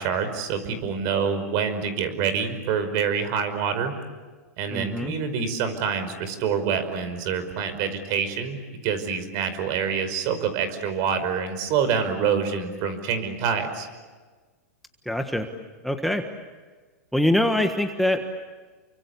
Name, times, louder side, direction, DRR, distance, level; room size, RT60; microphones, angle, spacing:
voice 1, 0.0-3.9 4.6-13.9, right 6 dB, 45° right, 10 dB, 5.3 m, -26 dB
voice 2, 4.7-5.1 15.0-15.5 15.8-16.2 17.1-18.3, left 1 dB, ahead, 5 dB, 1.5 m, -23 dB
30.0 x 24.0 x 8.3 m, 1.4 s
hypercardioid pair, 135°, 9 cm